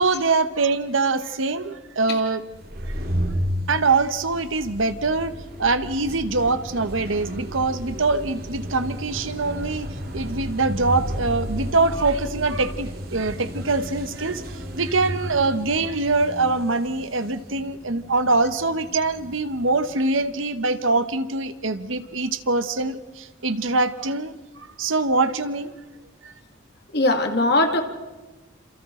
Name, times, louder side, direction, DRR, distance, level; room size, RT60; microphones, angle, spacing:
voice 1, 0.0-2.4 3.7-5.3 5.6-25.7 26.2-26.3, right 3 dB, 80° right, 11 dB, 1.2 m, -24 dB
sound 1, 2.5-19.9, equal, 50° right, 2.3 m, -33 dB
voice 2, 26.9-27.8, left 2 dB, 55° left, 4 dB, 2.2 m, -20 dB
28.0 x 28.0 x 3.9 m, 1.2 s
head